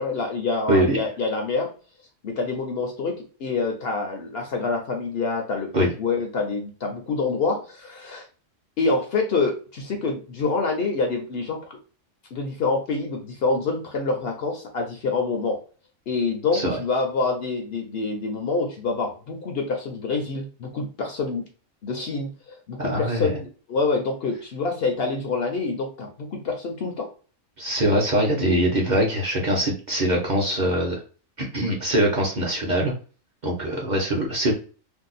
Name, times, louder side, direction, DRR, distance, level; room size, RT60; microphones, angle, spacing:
voice 1, 0.0-1.7 2.2-5.7 6.0-8.3 8.8-11.8 12.3-15.6 16.1-21.5 21.8-27.1, left 3 dB, 60° left, 3 dB, 0.7 m, -26 dB
voice 2, 0.7-1.1 5.7-5.9 16.5-16.8 22.8-23.4 27.6-31.0 31.4-32.9 33.4-34.5, right 1 dB, 45° right, -2 dB, 0.7 m, -23 dB
2.7 x 2.2 x 3.9 m, 0.37 s
omnidirectional pair, 1.3 m